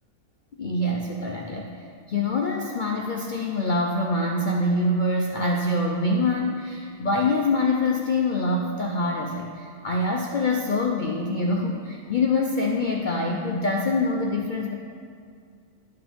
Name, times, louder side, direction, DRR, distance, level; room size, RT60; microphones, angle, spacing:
voice 1, 0.6-14.7, left 2 dB, 90° left, 0 dB, 0.4 m, -25 dB
12.0 x 6.1 x 3.4 m, 2.2 s
omnidirectional pair, 1.6 m